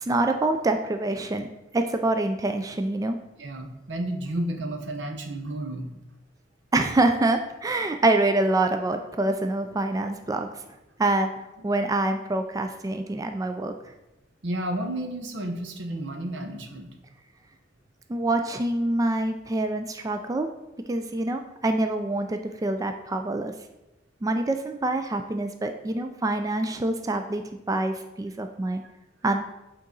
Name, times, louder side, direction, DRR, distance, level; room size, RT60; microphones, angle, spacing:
voice 1, 0.0-1.5 1.7-3.2 6.7-10.5 11.0-11.3 11.6-13.7 18.1-20.5 20.9-23.5 24.2-28.8 29.2-29.4, right 2 dB, 20° right, 6 dB, 0.3 m, -26 dB
voice 2, 3.4-5.9 14.4-16.9, right 1 dB, 80° right, 4 dB, 0.9 m, -31 dB
8.0 x 3.9 x 3.8 m, 0.96 s
head